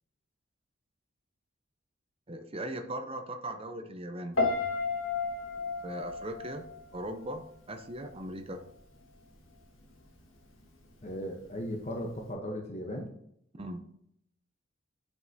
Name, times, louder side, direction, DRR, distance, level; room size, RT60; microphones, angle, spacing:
voice 1, 2.3-4.5 5.8-6.6 6.9-8.6 13.6-13.9, right 1 dB, 30° right, 6 dB, 0.6 m, -39 dB
Piano, 4.4-7.5 7.7-8.2, left 4 dB, 75° left, 1.7 m, -32 dB
voice 2, 11.0-13.1, equal, 35° left, 1 dB, 0.9 m, -37 dB
9.2 x 5.4 x 2.8 m, 0.71 s
head